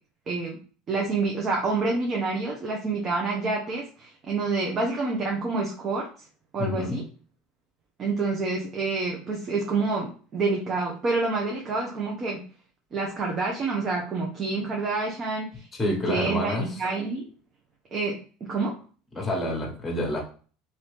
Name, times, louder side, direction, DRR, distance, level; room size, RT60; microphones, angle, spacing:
voice 1, 0.3-0.6 0.9-6.1 6.5-7.0 8.0-12.4 12.9-17.2 17.9-18.7, right 3 dB, 40° right, -1 dB, 0.7 m, -28 dB
voice 2, 6.6-7.0 15.7-16.8 19.1-20.2, left 1 dB, 15° left, 0 dB, 1.2 m, -28 dB
2.7 x 2.7 x 3.4 m, 0.40 s
hypercardioid pair, 90°, 0 cm